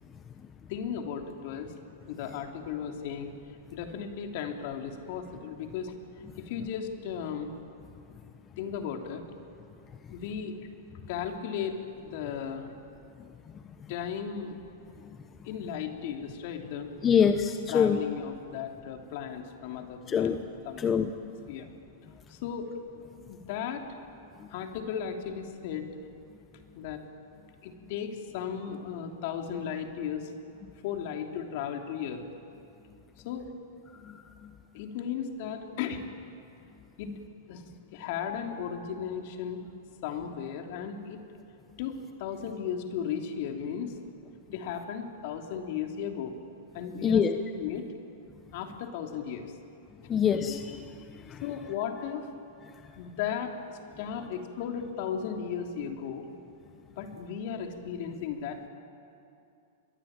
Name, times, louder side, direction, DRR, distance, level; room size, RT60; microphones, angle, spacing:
voice 1, 0.7-1.7 2.1-3.3 3.7-5.9 6.4-7.5 8.6-9.2 10.1-10.7 11.1-12.7 13.9-14.6 15.4-16.9 17.7-20.4 20.6-21.0 21.5-21.7 22.3-22.7 23.3-23.8 24.5-25.9 26.7-27.0 27.6-30.3 30.8-32.2 33.2-33.5 34.7-36.1 37.0-37.1 37.5-37.6 37.9-39.7 40.0-41.2 41.8-43.9 44.5-46.3 46.7-47.3 47.5-47.9 48.5-49.5 51.4-52.3 52.9-56.2 56.9-58.7, left 8 dB, 60° left, 4 dB, 3.2 m, -35 dB
voice 2, 17.0-18.0 20.1-20.3 20.8-21.1 47.0-47.3 50.1-50.8, left 7 dB, 25° left, 8 dB, 1.0 m, -24 dB
28.5 x 22.0 x 9.1 m, 2.6 s
hypercardioid pair, 120°, 0 cm